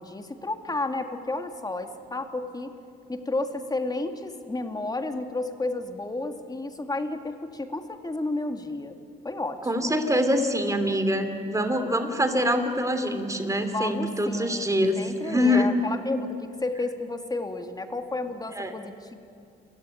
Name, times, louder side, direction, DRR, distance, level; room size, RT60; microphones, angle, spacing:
voice 1, 0.0-2.7 3.1-9.0 9.2-9.9 13.7-19.1, left 2 dB, 20° left, 6 dB, 2.2 m, -32 dB
voice 2, 9.6-15.7 18.5-18.7, equal, 15° right, 8 dB, 3.1 m, -25 dB
29.0 x 16.0 x 9.8 m, 2.4 s
cardioid pair, 90°, 20 cm